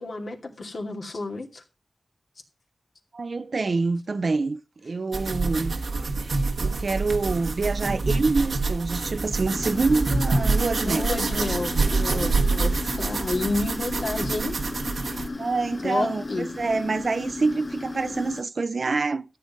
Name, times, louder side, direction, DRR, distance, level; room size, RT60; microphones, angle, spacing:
voice 1, 0.0-1.6 10.8-14.5 15.8-16.5, left 2 dB, 65° left, 2.5 m, -30 dB
voice 2, 3.1-5.8 6.6-11.1 15.4-19.2, right 3 dB, 60° right, 0.7 m, -26 dB
sound 1, 5.1-15.3, right 3 dB, 75° right, 1.3 m, -26 dB
sound 2, 9.5-18.4, left 2 dB, 35° left, 0.8 m, -35 dB
13.5 x 7.9 x 5.2 m
wide cardioid pair, 90°, 0 cm